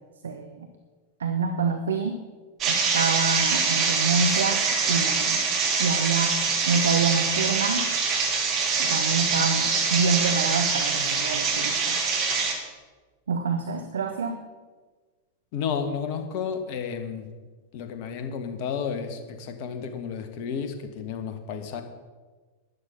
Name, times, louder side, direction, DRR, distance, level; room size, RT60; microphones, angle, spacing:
voice 1, 0.2-0.7 1.2-2.2 2.7-4.6 4.9-5.4 5.8-6.4 6.7-7.9 8.8-12.0 13.3-14.4, right 5 dB, 70° right, 6 dB, 1.0 m, -27 dB
sound 1, 2.6-12.5, right 5 dB, 35° right, 2.3 m, -24 dB
voice 2, 15.5-17.3 17.7-21.8, left 6 dB, 45° left, 7 dB, 1.6 m, -32 dB
12.0 x 11.0 x 5.8 m, 1.4 s
figure-of-eight pair, 90°, 0 cm